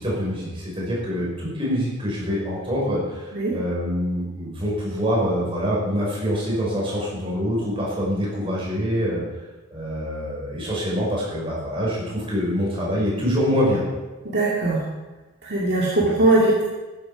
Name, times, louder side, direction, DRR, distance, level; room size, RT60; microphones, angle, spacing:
voice 1, 0.0-9.2 9.7-13.8, equal, 25° right, -5 dB, 5.5 m, -25 dB
voice 2, 14.2-14.8 15.4-16.6, right 2 dB, 50° right, -5 dB, 2.3 m, -20 dB
14.0 x 12.5 x 5.0 m, 1.2 s
head